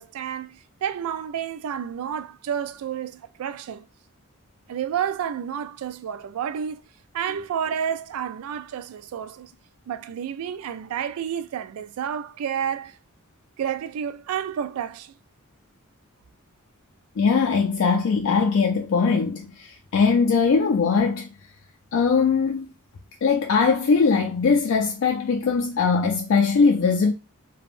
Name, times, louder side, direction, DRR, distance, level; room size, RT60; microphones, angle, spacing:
voice 1, 0.0-3.9 4.7-6.8 7.1-9.5 9.9-13.0 13.6-15.2, right 8 dB, 80° right, 0.3 m, -30 dB
voice 2, 17.2-21.3 21.9-22.7 23.2-27.1, left 5 dB, 65° left, 0.4 m, -21 dB
3.4 x 2.2 x 2.4 m
head